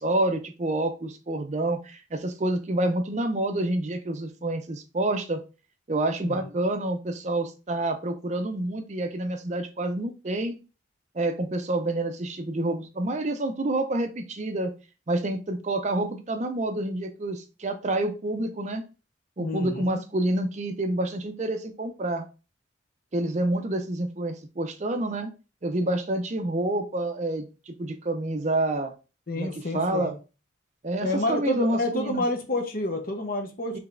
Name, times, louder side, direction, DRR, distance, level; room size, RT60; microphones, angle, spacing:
voice 1, 0.0-5.4 5.9-10.6 11.1-14.7 15.1-18.8 19.4-22.2 23.1-25.3 25.6-28.9 29.4-30.2 30.8-32.2 33.7-33.8, right 1 dB, 35° right, 7 dB, 0.5 m, -28 dB
voice 2, 19.4-20.0 29.3-30.1 31.0-33.8, left 2 dB, 50° left, 5 dB, 0.8 m, -29 dB
4.9 x 3.3 x 2.5 m, 0.32 s
head